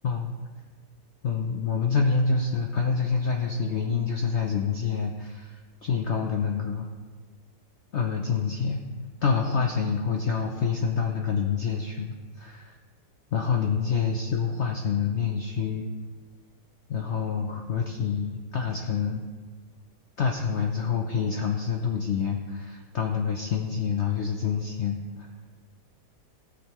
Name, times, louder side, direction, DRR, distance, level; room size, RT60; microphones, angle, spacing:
voice 1, 1.2-6.9 7.9-8.8 9.2-12.7 13.3-15.9 16.9-19.2 20.2-25.3, left 5 dB, 65° left, 2 dB, 0.7 m, -27 dB
16.5 x 6.6 x 3.0 m, 1.5 s
omnidirectional pair, 1.9 m